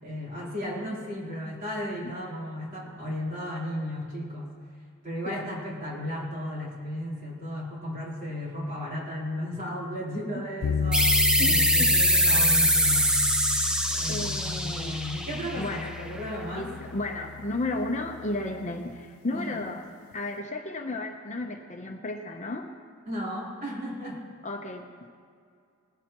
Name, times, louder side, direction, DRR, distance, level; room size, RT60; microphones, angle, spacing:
voice 1, 0.0-4.5 5.0-13.2 13.9-16.7 19.3-19.5 23.1-24.2, equal, 40° right, -6 dB, 3.9 m, -35 dB
sound 1, 10.6-18.8, left 6 dB, 70° left, 0.4 m, -34 dB
sound 2, 10.9-16.2, equal, 5° right, 0.6 m, -23 dB
voice 2, 11.4-11.9 14.1-15.0 15.6-15.9 16.5-19.8 20.1-22.7 24.4-25.1, left 2 dB, 35° left, 3 dB, 0.8 m, -33 dB
20.5 x 13.0 x 3.0 m, 2.3 s
head